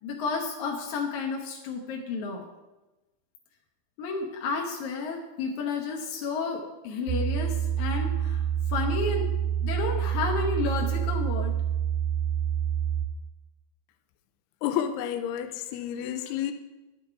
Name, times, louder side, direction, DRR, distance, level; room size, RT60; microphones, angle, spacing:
voice 1, 0.0-2.4 4.0-8.4 8.7-9.3 9.6-11.5, left 4 dB, 65° left, 0 dB, 2.0 m, -31 dB
sound 1, 7.1-13.1, right 9 dB, 85° right, 2.6 m, -27 dB
voice 2, 14.6-16.5, left 10 dB, 90° left, 9 dB, 2.7 m, -30 dB
11.5 x 8.9 x 4.7 m, 1.1 s
omnidirectional pair, 4.5 m